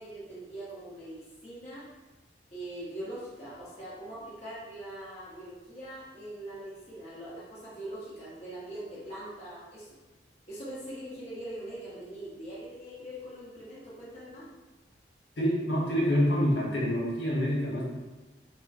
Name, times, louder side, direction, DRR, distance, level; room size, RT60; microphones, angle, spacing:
voice 1, 0.0-1.9 2.5-9.9 10.5-14.5, right 1 dB, 35° left, -9 dB, 0.8 m, -42 dB
voice 2, 15.4-17.8, equal, 75° left, -6 dB, 0.9 m, -26 dB
3.9 x 2.0 x 2.4 m, 1.2 s
head